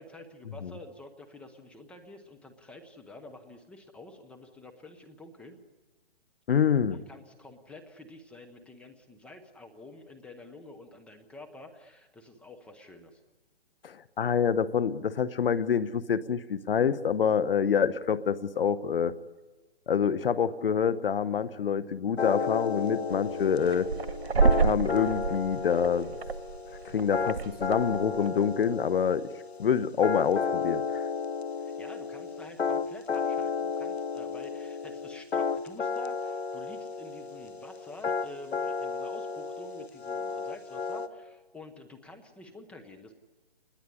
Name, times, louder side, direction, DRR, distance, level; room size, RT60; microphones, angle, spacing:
voice 1, 0.0-5.6 6.9-13.2 31.6-43.1, left 2 dB, 5° left, 4 dB, 0.8 m, -48 dB
voice 2, 6.5-7.0 13.8-19.1 19.9-23.9 24.6-26.1 26.9-29.3 29.6-31.0, left 7 dB, 65° left, 15 dB, 1.1 m, -26 dB
sound 1, 22.2-41.1, left 5 dB, 85° left, 1.9 m, -33 dB
sound 2, 23.1-28.5, right 5 dB, 90° right, 1.4 m, -29 dB
28.5 x 20.5 x 9.9 m, 1.3 s
hypercardioid pair, 155°, 31 cm